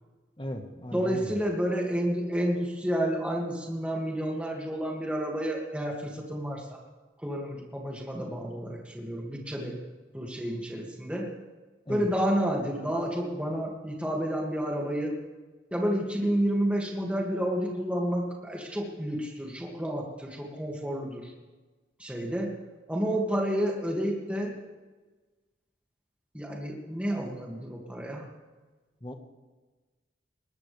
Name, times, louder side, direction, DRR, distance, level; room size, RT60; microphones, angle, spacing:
voice 1, 0.4-1.3 11.8-12.1 29.0-29.2, equal, 25° left, 4 dB, 1.5 m, -37 dB
voice 2, 0.9-6.8 7.2-9.8 10.1-11.3 11.9-15.1 15.7-21.3 22.0-22.5 22.9-24.5 26.3-28.3, equal, 5° right, -2 dB, 2.3 m, -30 dB
20.5 x 20.0 x 3.5 m, 1.3 s
head